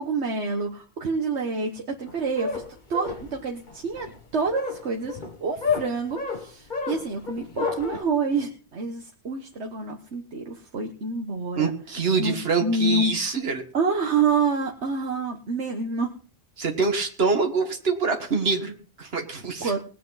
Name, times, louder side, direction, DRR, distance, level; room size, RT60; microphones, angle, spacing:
voice 1, 0.0-2.6 2.9-11.7 12.2-13.3 13.7-16.1 19.6-19.8, right 4 dB, 85° right, 2 dB, 1.6 m, -27 dB
sound 1, 2.1-8.0, left 5 dB, 45° left, 1.8 m, -31 dB
voice 2, 11.6-13.6 16.6-19.7, right 4 dB, 65° right, 4 dB, 2.0 m, -25 dB
20.0 x 8.4 x 4.0 m, 0.38 s
omnidirectional pair, 1.1 m